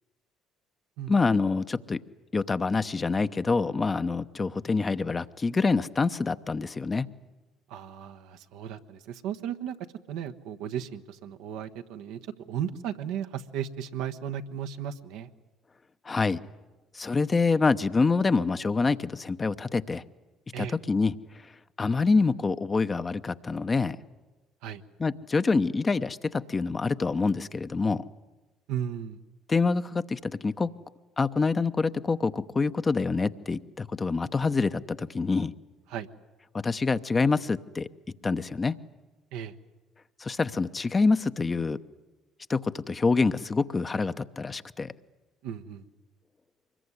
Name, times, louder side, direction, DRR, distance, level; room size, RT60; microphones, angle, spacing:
voice 1, 1.1-2.0 2.3-7.1 16.1-16.4 16.9-20.0 20.6-21.1 21.8-24.0 25.0-28.0 29.5-30.7 31.2-35.5 36.6-37.9 38.2-38.7 40.2-41.8 42.5-44.9, left 4 dB, 30° left, 11 dB, 0.9 m, -26 dB
voice 2, 7.7-9.8 10.1-15.3 20.5-20.8 24.6-24.8 28.7-29.2 35.9-36.1 39.3-39.5 45.4-45.8, right 9 dB, 75° right, 7 dB, 1.1 m, -35 dB
24.5 x 21.5 x 9.8 m, 1.2 s
hypercardioid pair, 60°, 0 cm